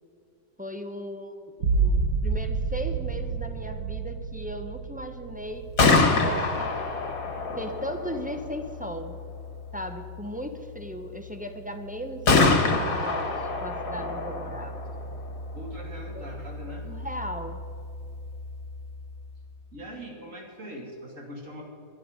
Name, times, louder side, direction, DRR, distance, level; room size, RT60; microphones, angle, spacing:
voice 1, 0.6-6.8 7.5-9.2 9.7-14.8 16.1-16.2 16.8-17.6, equal, 10° right, 5 dB, 0.6 m, -37 dB
sound 1, 1.6-7.1 7.5-8.1, right 4 dB, 70° right, 1.7 m, -29 dB
Gunshot gunfire, 5.5-19.4, left 3 dB, 60° left, 2.1 m, -28 dB
voice 2, 15.5-16.8 19.7-21.6, equal, 55° right, 1 dB, 2.7 m, -41 dB
22.0 x 11.0 x 5.1 m, 2.6 s
omnidirectional pair, 1.7 m